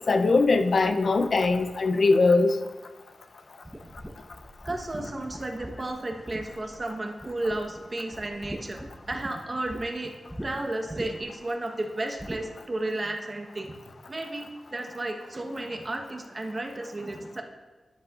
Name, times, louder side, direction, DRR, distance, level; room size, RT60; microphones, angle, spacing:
voice 1, 0.1-2.6, left 3 dB, 55° left, 7 dB, 0.5 m, -21 dB
sound 1, 3.7-6.9 7.2-7.8 8.1-9.8 10.3-10.5 10.9-11.4 12.2-12.5, equal, 5° right, 0.9 m, -41 dB
voice 2, 4.6-10.2 10.4-13.7 14.1-17.4, right 2 dB, 30° right, 3 dB, 1.0 m, -33 dB
12.5 x 9.8 x 2.4 m, 1.2 s
wide cardioid pair, 115°, 0 cm